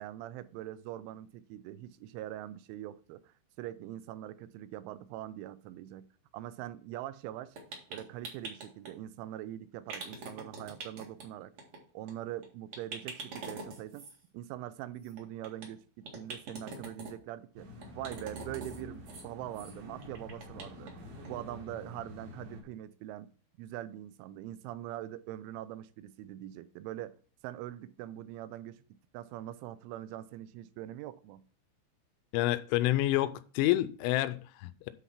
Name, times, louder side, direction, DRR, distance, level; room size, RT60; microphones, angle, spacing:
voice 1, 0.0-6.1 6.3-7.6 7.9-11.5 11.9-14.1 14.3-17.7 18.0-20.9 21.2-23.3 23.6-27.2 27.4-31.4, right 13 dB, 85° right, 3.1 m, -43 dB
sound 1, 7.6-8.9 9.9-11.2 11.6-11.8 12.1-12.2 12.4-12.5 12.7-14.2 15.0-15.7 16.0-17.1 17.8-18.8 19.0-19.2 19.5-19.7 20.0-20.9 21.2-21.3 21.7-21.8, right 3 dB, 50° right, 2.1 m, -43 dB
sound 2, 17.6-22.6, left 1 dB, 70° right, 4.0 m, -48 dB
voice 2, 32.3-34.9, left 15 dB, 85° left, 3.0 m, -28 dB
9.9 x 4.1 x 5.7 m
omnidirectional pair, 5.5 m